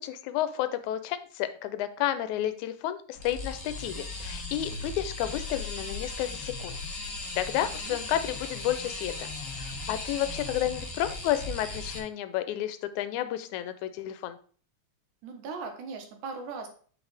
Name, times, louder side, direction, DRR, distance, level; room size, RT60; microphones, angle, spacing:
voice 1, 0.0-6.8 7.4-14.4, left 12 dB, 85° left, 12 dB, 2.1 m, -31 dB
sound 1, 3.1-12.0, left 3 dB, 45° left, 1.0 m, -37 dB
voice 2, 7.6-8.0 15.2-16.7, right 4 dB, 90° right, 4 dB, 2.6 m, -39 dB
7.1 x 5.6 x 3.4 m, 0.44 s
omnidirectional pair, 3.4 m